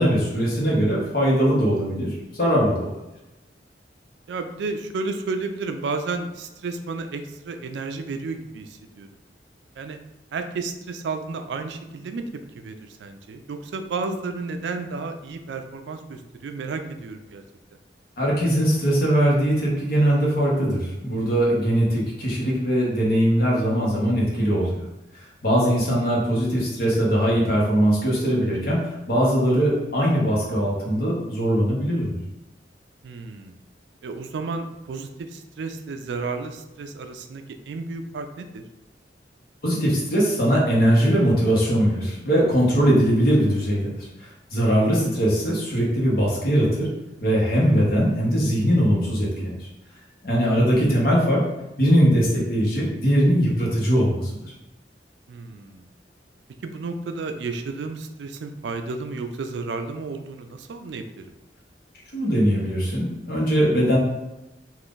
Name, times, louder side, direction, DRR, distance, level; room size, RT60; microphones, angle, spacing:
voice 1, 0.0-2.9 18.2-24.8 25.4-32.1 39.6-44.1 44.5-46.9 47.2-49.6 50.2-51.4 51.8-54.4 62.1-64.0, equal, 60° left, -4 dB, 1.0 m, -21 dB
voice 2, 4.3-9.1 9.8-10.0 10.3-17.4 25.6-25.8 33.0-33.6 34.0-38.6 55.3-55.8 56.6-61.3, right 4 dB, 80° right, 7 dB, 0.3 m, -32 dB
2.5 x 2.5 x 3.6 m, 1.0 s
head